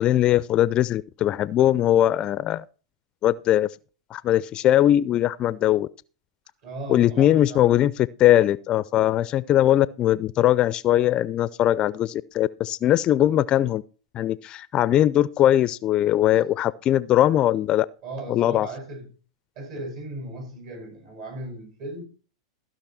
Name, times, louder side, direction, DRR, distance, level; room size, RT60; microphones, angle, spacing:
voice 1, 0.0-2.6 3.2-3.7 4.1-5.9 6.9-13.8 14.1-17.9 18.3-18.7, left 12 dB, 35° left, 0.4 m, -20 dB
voice 2, 6.6-7.7 18.0-19.1 19.6-22.0, right 2 dB, 60° right, 6.0 m, -36 dB
15.0 x 5.8 x 4.3 m
hypercardioid pair, 105°, 3 cm